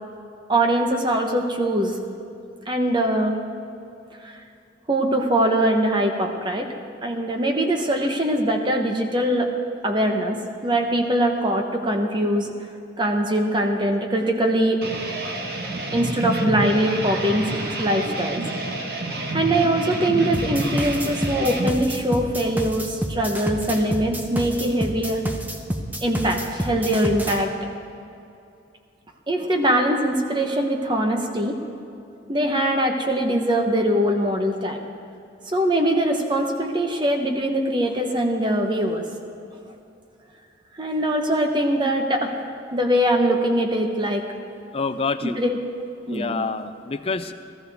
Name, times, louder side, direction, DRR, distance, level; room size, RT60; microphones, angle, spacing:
voice 1, 0.5-2.0 2.7-3.4 4.2-4.4 4.9-6.7 7.0-9.5 9.8-12.5 13.0-14.8 15.9-18.4 19.3-25.2 26.0-27.5 29.3-31.6 32.3-34.8 35.5-39.0 40.8-42.3 42.7-44.2 45.2-45.6 46.1-46.4, right 1 dB, 25° right, 3 dB, 1.0 m, -22 dB
sound 1, 14.8-21.7, right 1 dB, 55° right, 1.3 m, -28 dB
sound 2, 20.3-27.4, equal, 10° right, 0.7 m, -28 dB
voice 2, 44.7-45.4 46.1-47.3, left 4 dB, 30° left, 9 dB, 0.5 m, -27 dB
17.0 x 13.5 x 3.5 m, 2.6 s
head